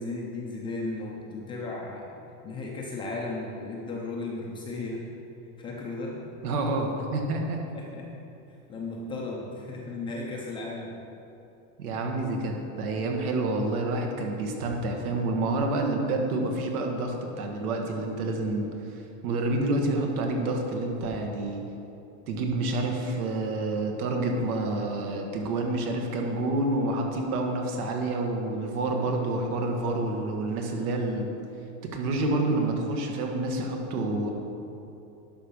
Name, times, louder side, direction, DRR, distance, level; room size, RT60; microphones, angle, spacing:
voice 1, 0.0-2.1 2.4-5.0 5.6-6.2 7.7-8.1 8.7-10.9, left 2 dB, 10° left, -3 dB, 0.4 m, -35 dB
voice 2, 6.4-7.6 11.8-18.7 19.2-21.6 22.3-31.3 31.8-34.3, right 2 dB, 85° right, 2 dB, 1.7 m, -28 dB
11.0 x 5.8 x 5.2 m, 2.9 s
supercardioid pair, 170°, 43 cm